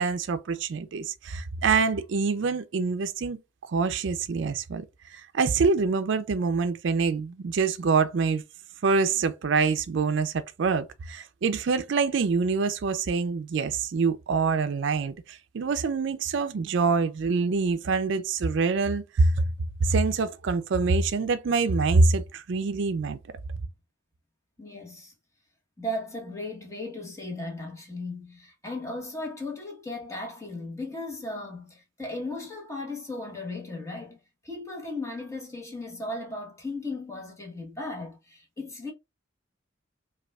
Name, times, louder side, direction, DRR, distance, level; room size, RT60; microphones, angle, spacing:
voice 1, 0.0-3.4 3.7-4.8 5.1-8.4 8.8-19.4 19.8-23.2, right 4 dB, 65° right, 0.4 m, -25 dB
voice 2, 24.6-25.1 25.8-34.2 34.4-38.9, left 2 dB, 15° left, 1.0 m, -36 dB
5.0 x 2.3 x 2.3 m
head